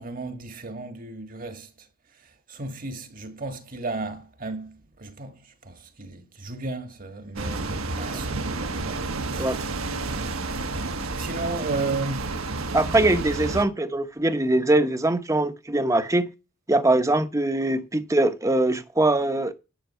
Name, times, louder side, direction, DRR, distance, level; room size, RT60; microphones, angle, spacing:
voice 1, 0.0-1.7 2.5-9.0 9.3-9.7 10.5-12.3, right 3 dB, 40° right, 1.5 m, -34 dB
sound 1, 7.4-13.7, right 3 dB, 75° right, 1.3 m, -30 dB
voice 2, 12.7-16.3 16.7-19.5, right 2 dB, 15° right, 0.9 m, -22 dB
10.5 x 8.8 x 5.6 m
head